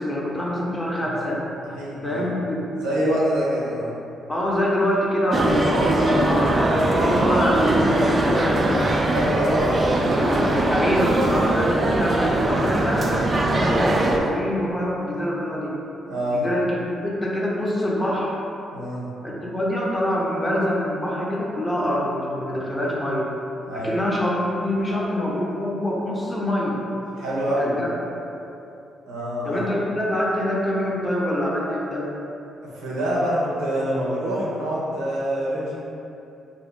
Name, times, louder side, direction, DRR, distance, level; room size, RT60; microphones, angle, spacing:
voice 1, 0.0-1.4 2.0-2.6 4.3-8.9 10.1-15.8 16.3-18.4 19.2-23.3 23.7-26.8 27.6-27.9 29.4-32.1, left 1 dB, 20° left, -4 dB, 0.7 m, -25 dB
voice 2, 1.7-2.2 2.8-3.9 9.1-10.1 16.1-16.5 18.7-19.0 23.7-23.9 27.2-27.7 29.0-29.6 32.7-35.8, equal, 80° right, -7 dB, 0.6 m, -25 dB
sound 1, 5.3-14.2, right 1 dB, 40° right, 0.3 m, -21 dB
2.7 x 2.6 x 3.2 m, 2.8 s
hypercardioid pair, 45°, 0 cm